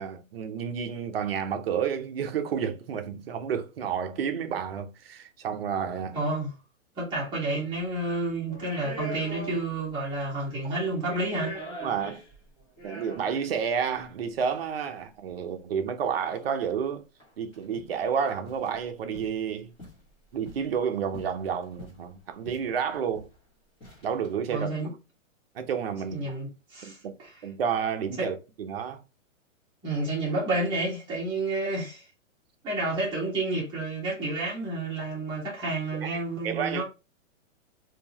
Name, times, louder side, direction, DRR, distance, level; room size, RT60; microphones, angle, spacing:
voice 1, 0.0-6.2 11.8-12.2 12.8-17.0 17.4-19.7 20.3-23.3 24.0-24.7 25.5-26.4 26.8-27.1 27.4-29.0 35.9-36.8, right 7 dB, 45° right, 0.6 m, -30 dB
voice 2, 6.1-6.5 7.0-11.5 24.5-24.9 26.1-27.3 28.2-28.3 29.8-32.0 32.6-36.8, right 2 dB, 10° right, 1.3 m, -30 dB
sound 1, 7.7-7.9 8.5-9.9 10.2-10.3 10.9-13.5 14.4-14.5 16.2-16.7 17.2-17.3 17.5-18.0 18.3-18.7 19.1-19.4 19.8-20.7 21.1-22.1 22.5-22.7 22.9-23.4 23.8-24.3, right 1 dB, 10° left, 1.3 m, -41 dB
3.6 x 2.7 x 2.8 m
hypercardioid pair, 165°, 40 cm